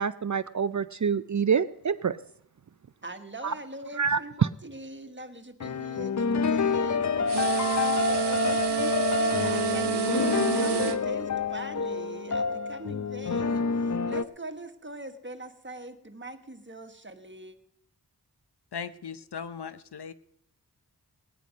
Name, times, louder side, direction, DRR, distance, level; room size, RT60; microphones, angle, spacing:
voice 1, 0.0-2.2 3.4-3.5 4.0-4.5, right 6 dB, 45° right, 14 dB, 0.5 m, -26 dB
voice 2, 3.0-17.6, right 1 dB, 30° right, 8 dB, 1.4 m, -42 dB
sound 1, 5.6-14.2, left 5 dB, 45° left, 0.6 m, -28 dB
sound 2, 7.3-11.0, right 9 dB, 80° right, 0.9 m, -28 dB
voice 3, 18.7-20.1, left 6 dB, 75° left, 13 dB, 0.8 m, -38 dB
18.0 x 10.0 x 5.2 m, 0.71 s
wide cardioid pair, 45°, 40 cm